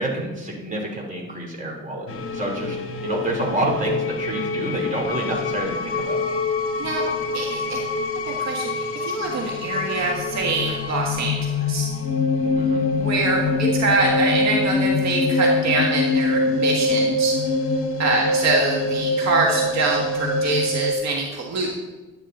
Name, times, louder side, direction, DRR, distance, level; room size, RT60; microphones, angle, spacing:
voice 1, 0.0-2.8 3.0-6.2 12.6-12.9, right 1 dB, 25° right, -1 dB, 3.2 m, -28 dB
sound 1, 2.1-20.9, left 2 dB, 45° left, 1.3 m, -24 dB
voice 2, 7.3-7.8 8.3-11.9 13.0-17.3 18.0-21.7, right 3 dB, 60° right, -1 dB, 1.6 m, -24 dB
11.5 x 9.6 x 3.9 m, 1.2 s
cardioid pair, 90°, 30 cm